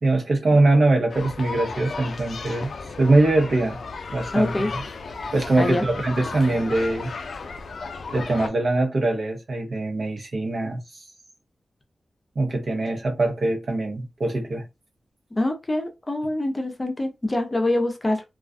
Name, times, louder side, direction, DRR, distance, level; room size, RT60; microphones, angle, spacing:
voice 1, 0.0-2.7 3.0-3.8 4.1-4.8 5.3-7.1 8.1-10.8 12.4-14.7, right 2 dB, 60° right, 0.8 m, -22 dB
sound 1, 1.1-8.5, left 4 dB, 70° left, 0.3 m, -34 dB
voice 2, 4.3-4.7 5.6-5.8 15.4-18.2, left 1 dB, 25° left, 0.6 m, -24 dB
2.4 x 2.2 x 2.5 m
cardioid pair, 70°, 0 cm